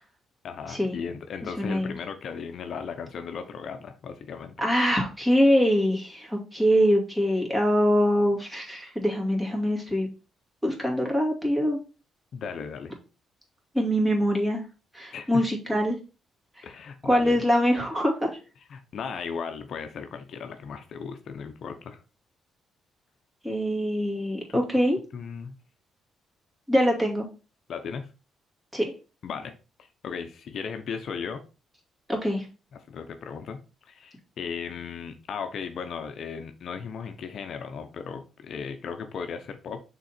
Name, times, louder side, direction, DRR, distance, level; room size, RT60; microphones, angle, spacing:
voice 1, 0.4-4.6 12.3-12.9 15.1-15.5 16.6-17.4 18.7-22.0 24.5-24.6 25.1-25.5 27.7-28.1 29.2-29.5 30.0-31.4 32.7-33.6 33.9-39.8, left 6 dB, 60° left, 8 dB, 0.7 m, -36 dB
voice 2, 1.6-1.9 4.6-10.1 10.6-11.8 13.7-14.6 14.9-16.0 16.6-16.7 17.0-18.3 23.4-25.0 26.7-27.3 28.7-28.9 32.1-32.5, equal, 10° right, -1 dB, 2.5 m, -23 dB
6.2 x 3.8 x 4.2 m, 0.32 s
cardioid pair, 90°, 0 cm